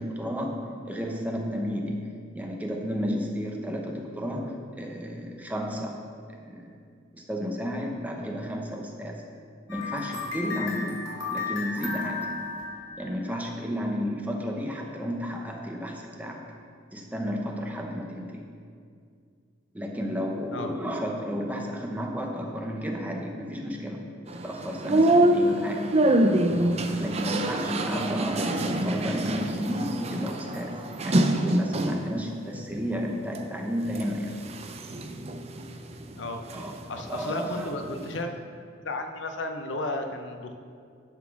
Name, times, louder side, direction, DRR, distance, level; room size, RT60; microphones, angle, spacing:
voice 1, 0.0-2.0 2.3-6.0 6.3-6.7 7.1-9.2 9.7-11.0 11.3-12.3 13.0-16.4 16.9-18.4 19.7-25.9 27.0-34.3 36.5-36.7 37.1-38.1, equal, 10° right, 0 dB, 0.8 m, -32 dB
sound 1, 9.7-13.5, left 4 dB, 85° left, 2.0 m, -34 dB
sound 2, 24.3-32.1 32.6-33.4 33.9-36.7 37.0-38.2, right 1 dB, 35° right, 0.5 m, -25 dB
voice 2, 27.9-28.3 36.2-36.4 36.9-38.3 38.8-40.6, left 2 dB, 70° left, 6 dB, 0.7 m, -33 dB
11.0 x 4.1 x 5.9 m, 2.2 s
head